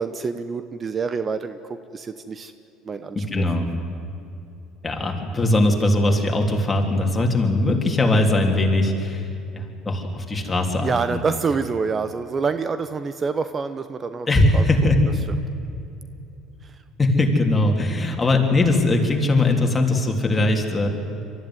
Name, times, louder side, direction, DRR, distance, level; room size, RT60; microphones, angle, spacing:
voice 1, 0.0-2.5 2.8-3.5 10.8-14.3 14.5-14.6, right 5 dB, 35° right, 11 dB, 0.9 m, -26 dB
voice 2, 3.3-3.7 4.8-11.2 14.3-15.1 17.0-20.9, left 2 dB, 20° left, 2 dB, 3.4 m, -20 dB
23.5 x 14.0 x 9.8 m, 2.7 s
supercardioid pair, 80°, 0 cm